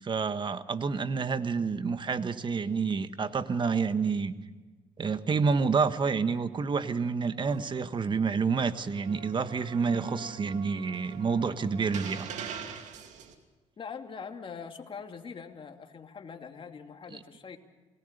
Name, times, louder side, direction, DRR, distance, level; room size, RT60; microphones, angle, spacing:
voice 1, 0.0-4.3 5.0-12.3 17.1-17.2, right 5 dB, 40° right, 11 dB, 1.4 m, -28 dB
sound 1, 7.4-8.3 8.9-13.3, right 7 dB, 75° right, 2.6 m, -43 dB
voice 2, 13.8-17.6, left 6 dB, 45° left, 5 dB, 2.6 m, -43 dB
29.0 x 18.5 x 6.8 m, 1.3 s
cardioid pair, 80°, 12 cm